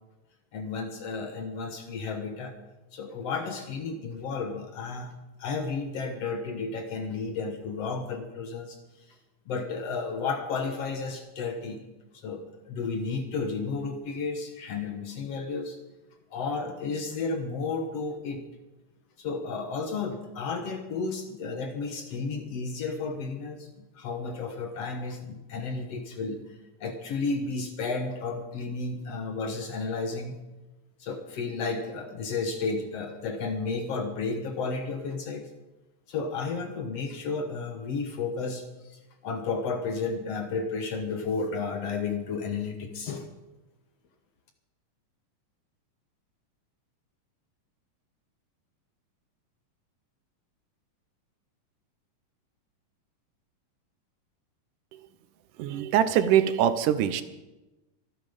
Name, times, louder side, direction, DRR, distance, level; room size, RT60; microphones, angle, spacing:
voice 1, 0.5-2.5 2.9-5.1 5.4-8.8 9.1-9.2 9.5-11.8 12.1-15.8 16.3-18.4 19.2-30.4 31.0-35.5 36.1-43.3, left 4 dB, 60° left, 6 dB, 2.0 m, -32 dB
voice 2, 55.6-57.2, right 10 dB, 75° right, 12 dB, 2.2 m, -23 dB
24.5 x 9.5 x 5.2 m, 1.1 s
omnidirectional pair, 3.8 m